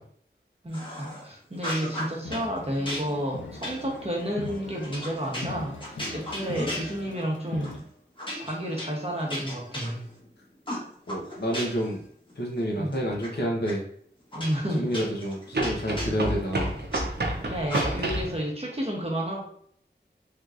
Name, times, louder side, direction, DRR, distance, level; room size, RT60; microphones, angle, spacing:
voice 1, 0.6-7.8 8.4-10.1 12.8-12.9 14.3-14.9 17.4-19.4, equal, 30° right, -2 dB, 0.8 m, -31 dB
sound 1, 0.7-1.2 1.6-2.5 2.9-7.3 7.6-7.8 8.2-10.3 10.7-11.9 12.3-13.3 13.7-13.8 14.3-17.0 17.7-18.2, equal, 25° left, 1.2 m, -36 dB
sound 2, 2.2-7.8, left 3 dB, 80° left, 0.5 m, -41 dB
voice 2, 11.1-12.0 12.4-13.8 14.8-16.7, equal, 60° left, -2 dB, 0.9 m, -29 dB
sound 3, 13.1-13.2 15.5-18.4, right 1 dB, 60° right, 0.6 m, -29 dB
3.5 x 2.9 x 2.5 m, 0.62 s
wide cardioid pair, 50°, 19 cm